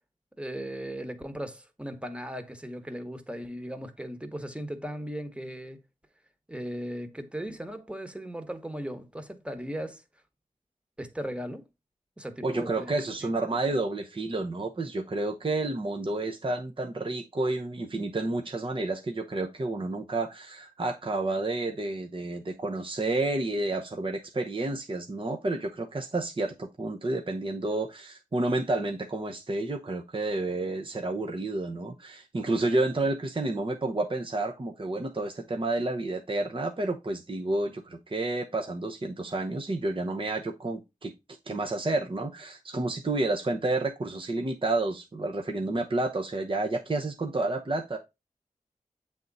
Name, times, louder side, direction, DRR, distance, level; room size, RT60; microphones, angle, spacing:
voice 1, 0.4-5.8 6.5-10.0 11.0-11.6 12.2-12.9 13.2-13.4, equal, 10° right, 1.2 m, -37 dB
voice 2, 12.4-41.1 41.5-48.0, right 2 dB, 40° right, 0.9 m, -30 dB
7.6 x 3.6 x 4.0 m
cardioid pair, 40°, 14 cm